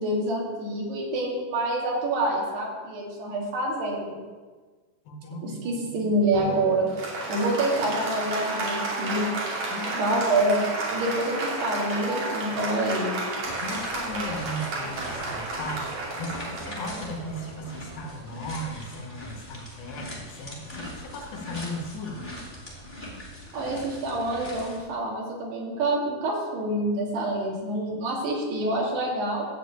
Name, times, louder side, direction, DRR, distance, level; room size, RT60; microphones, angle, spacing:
voice 1, 0.0-4.2 5.4-6.9 7.3-9.3 10.0-13.2 23.5-29.5, right 1 dB, 75° right, -3 dB, 4.5 m, -27 dB
voice 2, 5.1-6.0 9.7-10.2 13.6-22.3, left 1 dB, 80° left, 1 dB, 3.6 m, -37 dB
sound 1, 5.6-5.7 7.6-12.4, right 3 dB, 30° right, 2.3 m, -42 dB
Applause, 6.3-18.2, right 3 dB, 50° right, 3.5 m, -32 dB
sound 2, 13.4-24.8, equal, 15° left, 2.0 m, -41 dB
13.5 x 5.0 x 8.4 m, 1.4 s
omnidirectional pair, 4.8 m